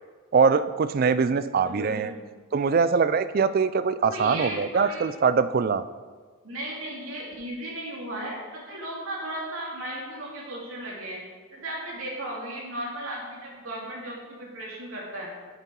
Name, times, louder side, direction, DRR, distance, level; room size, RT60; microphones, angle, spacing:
voice 1, 0.3-2.1 2.5-5.8, right 5 dB, 40° right, 13 dB, 0.3 m, -22 dB
voice 2, 1.6-2.2 4.1-5.0 6.4-11.2 11.5-15.3, right 1 dB, 75° right, -4 dB, 2.5 m, -35 dB
8.2 x 6.8 x 4.6 m, 1.5 s
head